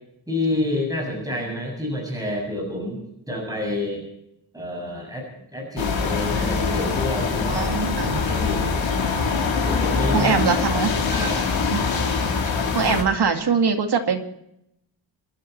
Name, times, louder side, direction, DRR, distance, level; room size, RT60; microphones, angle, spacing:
voice 1, 0.3-4.0 4.5-5.2 5.5-7.7 8.3-8.8 9.6-10.5 11.1-11.4, left 1 dB, 10° right, -1 dB, 7.0 m, -28 dB
sound 1, 5.8-13.0, left 5 dB, 75° left, 3.9 m, -23 dB
voice 2, 7.5-8.3 10.1-10.9 11.7-11.9 12.7-14.2, right 5 dB, 55° right, 5 dB, 2.4 m, -22 dB
27.0 x 12.0 x 4.5 m, 0.78 s
wide cardioid pair, 150°, 46 cm